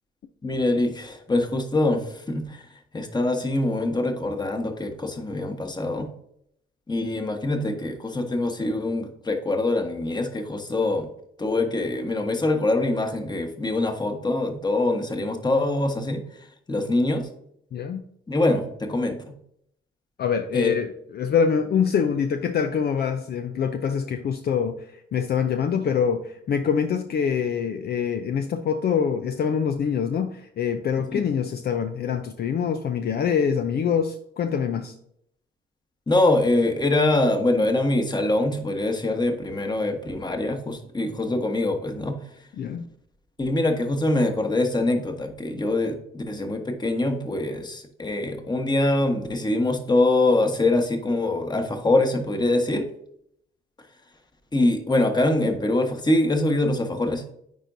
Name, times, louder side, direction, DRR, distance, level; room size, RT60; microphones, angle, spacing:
voice 1, 0.4-2.6 2.9-6.1 6.9-11.1 11.4-17.3 18.3-19.2 20.5-20.8 31.1-31.2 36.1-42.2 43.4-52.9 54.5-57.2, left 2 dB, 20° left, 5 dB, 1.3 m, -24 dB
voice 2, 17.7-18.0 20.2-34.9 42.6-42.9, left 7 dB, 55° left, 7 dB, 0.6 m, -25 dB
9.5 x 4.4 x 2.7 m, 0.72 s
cardioid pair, 90°, 20 cm